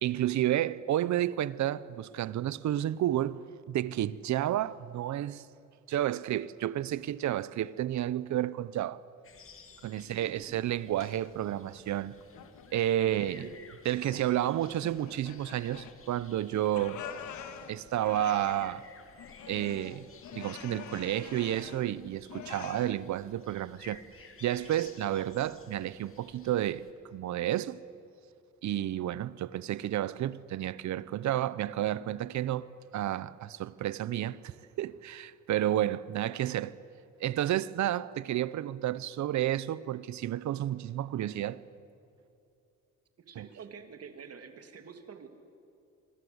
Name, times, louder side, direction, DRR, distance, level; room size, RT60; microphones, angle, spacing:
voice 1, 0.0-3.4 3.7-5.4 5.9-9.0 9.8-12.1 12.7-13.5 13.8-17.0 17.7-18.8 19.5-20.1 20.4-24.0 24.4-26.9 27.1-27.8 28.6-32.7 32.9-34.5 34.8-36.7 37.2-41.6 43.4-43.5, right 12 dB, 70° right, 0.8 m, -31 dB
sound 1, 9.2-26.9, left 5 dB, 45° left, 2.8 m, -55 dB
voice 2, 10.1-10.6 13.0-13.6 43.2-45.3, right 6 dB, 55° right, 2.9 m, -48 dB
sound 2, 10.4-11.3 11.7-12.8 13.0-13.6 13.9-14.5 14.8-16.2 16.5-18.8 19.2-21.9 22.3-22.9, left 8 dB, 75° left, 1.9 m, -46 dB
26.5 x 22.5 x 8.1 m
cardioid pair, 90°, 30 cm